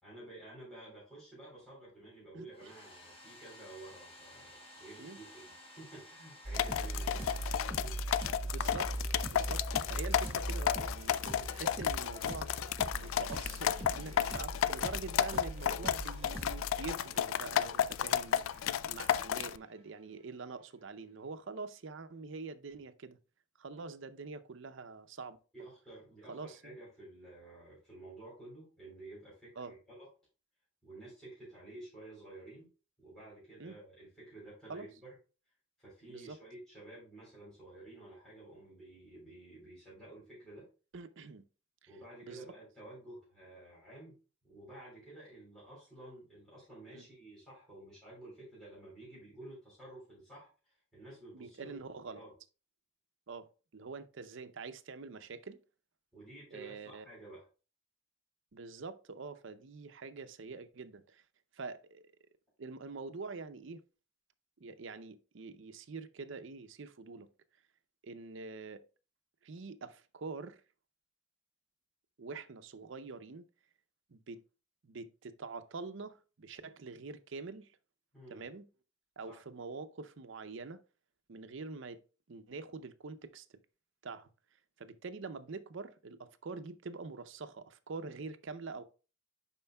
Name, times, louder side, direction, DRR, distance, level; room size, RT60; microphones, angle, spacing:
voice 1, 0.0-7.9 25.5-30.1 30.8-32.7 33.0-35.1 35.8-40.7 41.9-44.1 44.4-51.7 52.0-52.4 56.1-57.4 78.1-78.4 79.2-79.4, right 2 dB, 5° left, 3.7 m, -52 dB
voice 2, 2.3-2.7 5.0-5.2 8.5-8.9 9.3-12.5 12.9-23.2 23.6-25.4 26.3-26.7 29.6-29.7 33.6-33.8 34.7-34.9 36.1-36.4 40.9-41.4 42.2-42.5 46.9-47.0 51.3-52.2 53.3-53.5 53.7-55.6 56.5-57.0 58.5-61.2 61.5-62.1 62.6-63.8 64.6-67.3 68.0-68.8 69.4-70.6 72.2-73.5 74.1-74.4 74.8-77.7 78.3-78.6 79.2-80.8 81.3-82.0 82.3-83.5 84.0-84.3 84.8-88.8, right 4 dB, 65° right, 0.6 m, -45 dB
Domestic sounds home sounds, 2.5-8.4, left 1 dB, 30° left, 1.5 m, -55 dB
sound 1, 6.4-19.2, right 1 dB, 30° right, 1.5 m, -41 dB
sound 2, 6.5-19.6, left 10 dB, 80° left, 0.3 m, -33 dB
11.0 x 4.4 x 2.3 m
head